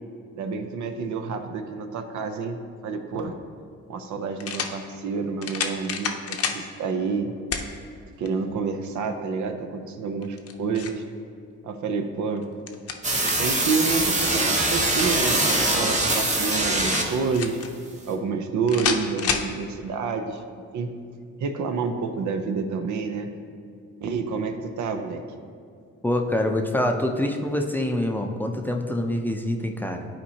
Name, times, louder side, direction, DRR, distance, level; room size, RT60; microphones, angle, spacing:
voice 1, 0.3-3.4 3.9-7.3 8.2-11.0 11.6-12.5 13.4-17.6 18.1-20.4 20.7-21.0 21.4-23.3 24.0-25.2, right 4 dB, 70° right, 7 dB, 0.7 m, -28 dB
sound 1, 3.1-3.2 4.4-4.8 5.4-6.6 7.5-7.7 8.3-8.4 10.2-11.0 12.4-13.6 14.7-15.7 16.8-17.7 18.7-19.5, left 6 dB, 55° left, 0.7 m, -29 dB
sound 2, 13.0-17.4, right 2 dB, 25° right, 1.0 m, -23 dB
voice 2, 26.0-30.1, left 1 dB, 5° left, 3 dB, 0.5 m, -25 dB
11.0 x 4.3 x 2.8 m, 2.3 s
cardioid pair, 90°, 30 cm